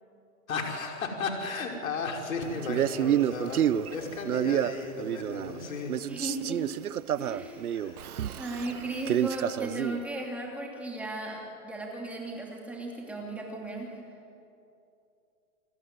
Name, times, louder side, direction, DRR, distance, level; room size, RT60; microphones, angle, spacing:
voice 1, 0.5-3.6 3.9-6.2 7.7-8.0, left 4 dB, 70° left, 2 dB, 5.3 m, -34 dB
Male speech man speaking, 2.6-5.6 5.9-10.0, right 10 dB, 90° right, 1.0 m, -29 dB
voice 2, 6.1-6.6 7.2-7.6 8.4-13.9, right 2 dB, 5° right, -1 dB, 2.7 m, -36 dB
28.5 x 19.0 x 9.7 m, 2.7 s
hypercardioid pair, 170°, 43 cm